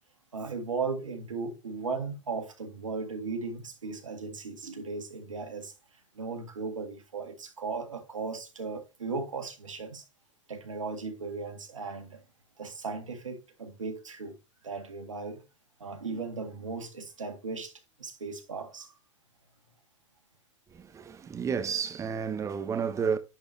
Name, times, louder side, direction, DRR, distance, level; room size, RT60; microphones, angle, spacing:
voice 1, 0.3-5.7 6.2-10.0 10.5-12.2 12.6-14.4 14.6-15.4 15.8-17.7 18.0-18.9, right 4 dB, 90° right, 1.8 m, -36 dB
voice 2, 20.7-23.2, right 6 dB, 20° right, 1.0 m, -31 dB
10.0 x 4.3 x 3.2 m
hypercardioid pair, 110°, 16 cm